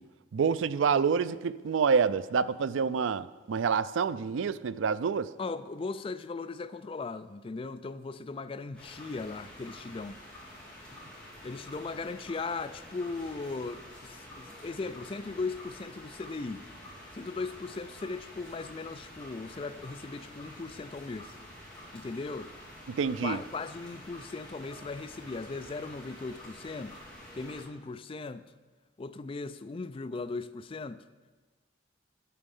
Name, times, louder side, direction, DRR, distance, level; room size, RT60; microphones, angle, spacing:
voice 1, 0.3-5.3 22.9-23.4, right 6 dB, 80° right, 0.4 m, -27 dB
voice 2, 5.4-10.2 11.4-16.6 17.1-21.4 21.9-22.5 23.2-27.0 27.3-28.4 29.0-31.0, left 3 dB, 30° left, 0.4 m, -38 dB
sound 1, 8.8-27.6, left 1 dB, 5° left, 3.0 m, -48 dB
9.8 x 8.4 x 5.4 m
head